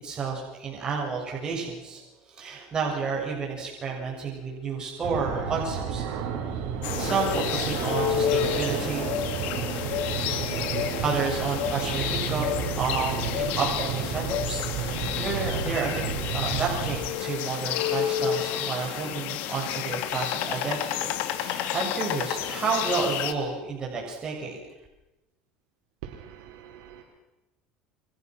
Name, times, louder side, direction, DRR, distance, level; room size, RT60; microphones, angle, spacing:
voice 1, 0.0-2.0 2.3-6.0 7.0-9.1 11.0-16.0 16.3-21.1 21.4-24.6, right 4 dB, 25° right, -2 dB, 7.0 m, -31 dB
Fixed-wing aircraft airplane, 5.0-17.0, right 6 dB, 65° right, 5.3 m, -31 dB
sound 1, 6.8-23.3, left 10 dB, 65° left, 2.8 m, -30 dB
voice 2, 26.0-27.0, right 10 dB, 80° right, 1 dB, 4.2 m, -43 dB
29.5 x 24.5 x 6.3 m, 1.0 s
supercardioid pair, 125°, 3 cm